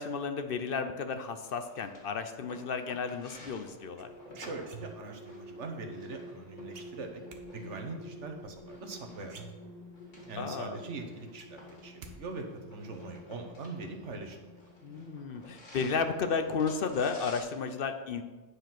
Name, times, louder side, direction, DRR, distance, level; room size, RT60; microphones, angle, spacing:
voice 1, 0.0-4.1 10.4-10.8 14.8-18.2, left 5 dB, 55° left, 8 dB, 0.7 m, -33 dB
sound 1, 1.4-17.4, left 1 dB, 85° left, 2.3 m, -54 dB
sound 2, 3.6-15.4, equal, 35° left, 2.1 m, -50 dB
sound 3, 4.0-5.3 6.7-7.4 8.8-8.9 9.2-10.1 10.5-10.6 10.9-12.2 12.4-12.9, right 5 dB, 55° right, 1.0 m, -49 dB
voice 2, 4.4-9.4 10.3-14.4, right 3 dB, 70° right, 4 dB, 1.4 m, -42 dB
9.4 x 5.0 x 5.9 m, 1.2 s
omnidirectional pair, 1.2 m